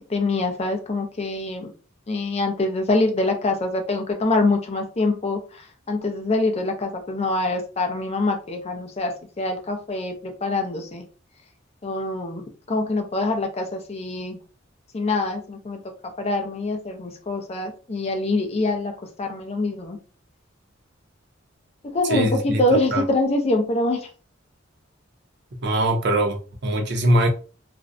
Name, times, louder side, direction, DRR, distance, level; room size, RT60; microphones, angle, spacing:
voice 1, 0.1-1.7 2.1-11.0 11.8-14.4 14.9-20.0 21.8-24.1, left 2 dB, 30° left, 0.5 m, -25 dB
voice 2, 22.1-23.0 25.6-27.3, right 1 dB, 60° right, 0.5 m, -22 dB
2.5 x 2.0 x 2.5 m
head